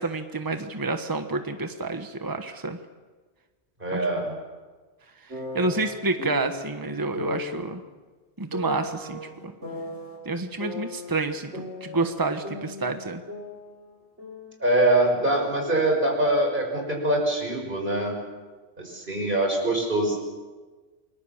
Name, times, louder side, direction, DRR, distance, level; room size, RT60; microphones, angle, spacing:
voice 1, 0.0-2.8 3.9-4.0 5.5-7.8 8.4-9.5 10.2-13.2, right 3 dB, 20° right, 7 dB, 1.3 m, -29 dB
voice 2, 3.8-4.4 14.6-18.2 18.8-20.2, right 1 dB, 50° right, 1 dB, 6.3 m, -23 dB
sound 1, 5.3-6.7 7.1-7.7 8.5-10.2 10.6-12.2 12.4-14.6 14.8-16.4, left 1 dB, 90° right, 6.3 m, -37 dB
29.5 x 22.0 x 7.3 m, 1.3 s
omnidirectional pair, 1.1 m